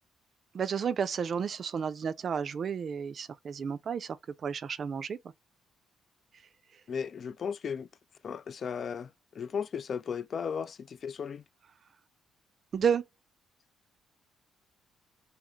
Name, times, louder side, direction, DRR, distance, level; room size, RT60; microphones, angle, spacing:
voice 1, 0.5-4.2 4.4-5.2 12.7-13.0, right 7 dB, 50° right, 0.4 m, -31 dB
voice 2, 6.9-7.9 8.2-11.4, left 6 dB, 50° left, 0.3 m, -35 dB
3.1 x 2.9 x 2.3 m
cardioid pair, 90°, 0 cm